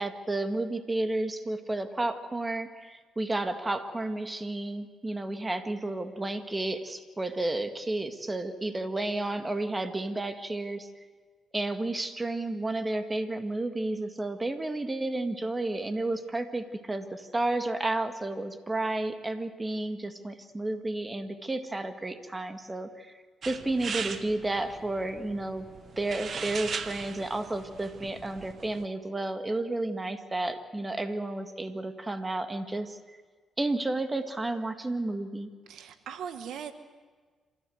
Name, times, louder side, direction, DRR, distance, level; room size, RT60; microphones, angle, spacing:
voice 1, 0.0-10.9 11.5-23.1 23.5-25.7 26.0-33.0 33.6-35.5, right 2 dB, 20° right, 7 dB, 1.9 m, -32 dB
sound 1, 23.4-28.8, right 6 dB, 55° right, 1.2 m, -39 dB
voice 2, 35.7-36.7, right 8 dB, 80° right, 10 dB, 1.1 m, -39 dB
27.0 x 14.0 x 7.9 m, 1.5 s
cardioid pair, 70°, 0 cm